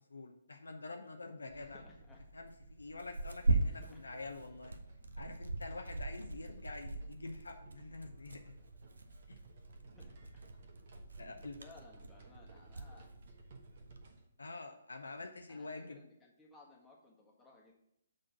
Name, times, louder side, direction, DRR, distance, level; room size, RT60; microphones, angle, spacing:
voice 1, 0.1-1.8 2.3-4.7 5.2-8.6 9.3-9.4 11.2-11.6 14.4-16.1, left 3 dB, 75° left, 4 dB, 0.8 m, -47 dB
Tearing, 1.4-14.1, right 2 dB, 75° right, 0.7 m, -41 dB
voice 2, 1.5-2.2 3.4-4.0 9.8-10.4 11.2-13.1 15.5-17.7, left 2 dB, 10° left, -3 dB, 1.4 m, -61 dB
sound 1, 3.4-14.3, right 4 dB, 50° right, 1.1 m, -60 dB
6.6 x 3.8 x 5.9 m, 0.79 s
figure-of-eight pair, 130°, 0 cm